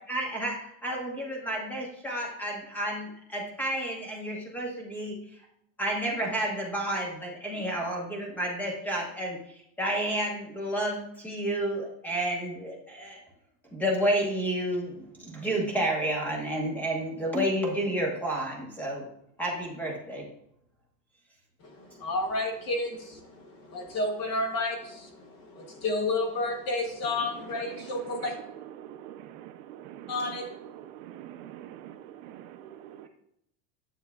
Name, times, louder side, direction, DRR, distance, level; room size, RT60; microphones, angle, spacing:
voice 1, 0.1-5.2 5.8-13.2 13.7-19.1 19.4-20.3, right 1 dB, 5° left, 1.0 m, -30 dB
voice 2, 21.6-28.4 30.1-30.5, left 2 dB, 30° left, 0.9 m, -31 dB
voice 3, 28.8-30.1 30.9-32.0, right 12 dB, 55° right, 0.6 m, -44 dB
9.8 x 7.1 x 2.3 m
supercardioid pair, 165°, 50 cm